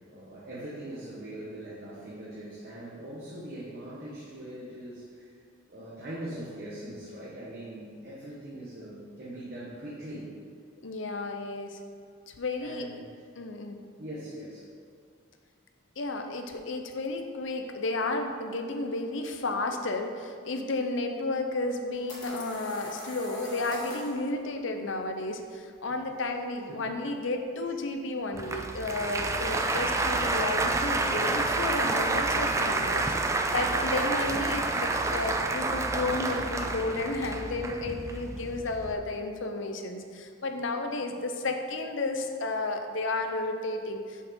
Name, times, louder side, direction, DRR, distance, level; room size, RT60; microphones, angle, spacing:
voice 1, 0.1-5.3 5.7-10.3 12.6-13.1 14.0-14.7 25.9-26.1 26.7-27.0 27.7-27.8 33.6-33.9, right 1 dB, 50° right, -9 dB, 1.4 m, -41 dB
voice 2, 10.8-11.8 12.3-12.9 13.4-13.8 16.0-44.2, left 2 dB, 70° left, 5 dB, 0.7 m, -32 dB
sound 1, 21.7-24.2, equal, 20° left, 1.7 m, -42 dB
Applause, 28.3-38.9, right 3 dB, 15° right, 0.3 m, -29 dB
7.1 x 4.9 x 5.3 m, 2.2 s
head